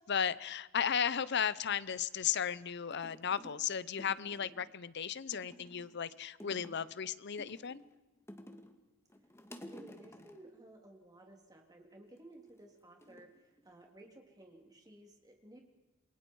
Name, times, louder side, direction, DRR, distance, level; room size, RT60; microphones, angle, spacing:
voice 1, 0.0-7.8, left 8 dB, 60° left, 18 dB, 0.7 m, -35 dB
sound 1, 2.9-3.7 4.0-4.7 5.3-6.0 6.4-6.9 7.4-8.8 9.1-10.5 12.1-12.5 13.0-14.1 14.4-14.9, left 1 dB, 15° left, 1.8 m, -53 dB
voice 2, 9.6-15.6, right 1 dB, 20° right, 2 dB, 3.4 m, -56 dB
28.5 x 22.0 x 4.7 m, 1.1 s
head